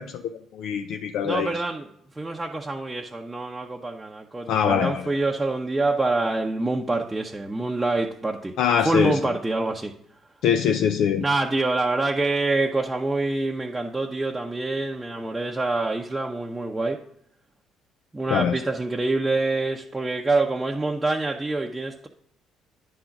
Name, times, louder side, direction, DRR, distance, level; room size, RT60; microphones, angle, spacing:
voice 1, 0.0-1.6 4.5-5.0 8.6-9.2 10.4-11.2 18.3-18.6, left 8 dB, 70° left, 0.4 m, -23 dB
voice 2, 1.2-8.6 8.8-10.0 11.2-17.0 18.1-22.1, right 2 dB, 15° right, 0.7 m, -26 dB
9.4 x 3.8 x 5.8 m
supercardioid pair, 65°, 0 cm